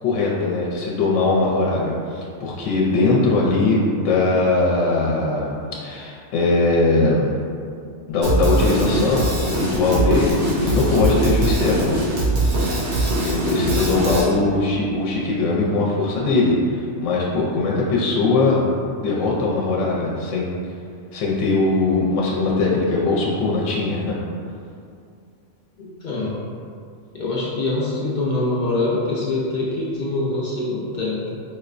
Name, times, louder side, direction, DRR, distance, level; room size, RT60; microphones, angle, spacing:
voice 1, 0.0-7.3 8.1-12.0 13.2-18.7 19.0-20.5 21.1-24.2, left 3 dB, 85° left, -4 dB, 0.9 m, -20 dB
Drum kit, 8.2-14.2, right 1 dB, 80° right, 1.1 m, -21 dB
voice 2, 25.8-26.5 27.1-31.4, left 2 dB, 55° left, -7 dB, 0.5 m, -24 dB
4.6 x 2.1 x 2.4 m, 2.4 s
omnidirectional pair, 1.2 m